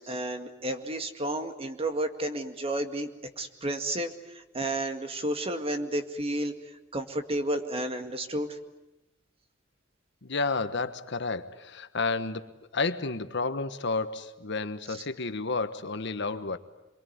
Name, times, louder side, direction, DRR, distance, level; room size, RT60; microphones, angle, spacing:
voice 1, 0.0-3.1 3.4-6.5 6.9-8.5, right 1 dB, 30° right, 7 dB, 2.0 m, -31 dB
voice 2, 10.2-16.6, left 3 dB, 60° left, 11 dB, 1.3 m, -31 dB
27.5 x 23.0 x 9.5 m, 0.96 s
head